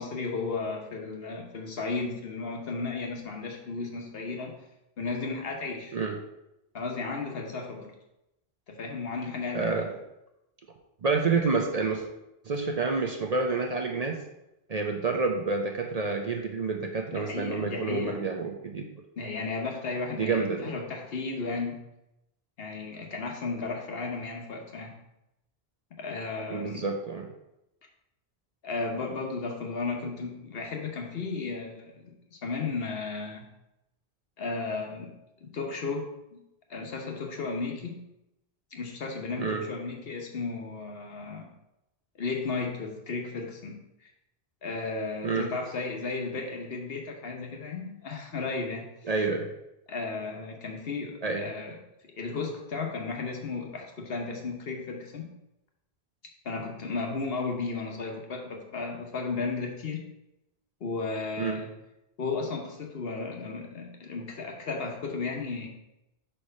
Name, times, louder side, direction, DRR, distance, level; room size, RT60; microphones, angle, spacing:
voice 1, 0.0-4.6 5.0-6.0 6.7-7.9 8.7-9.9 17.1-18.3 19.2-21.8 22.6-24.9 26.0-26.8 28.6-33.5 34.4-35.1 35.4-36.4 36.7-38.0 38.7-41.5 42.2-43.8 44.6-48.9 49.9-51.8 52.2-55.3 56.4-60.0 60.8-61.7 62.2-65.7, left 4 dB, 70° left, 2 dB, 1.2 m, -34 dB
voice 2, 9.5-9.9 11.0-12.1 12.5-14.2 14.7-18.9 20.1-20.8 26.5-27.3 39.4-39.6 45.2-45.5 49.1-49.5 51.2-51.5 61.4-61.6, right 4 dB, 45° right, 3 dB, 0.6 m, -28 dB
4.8 x 4.4 x 5.3 m, 0.89 s
omnidirectional pair, 1.1 m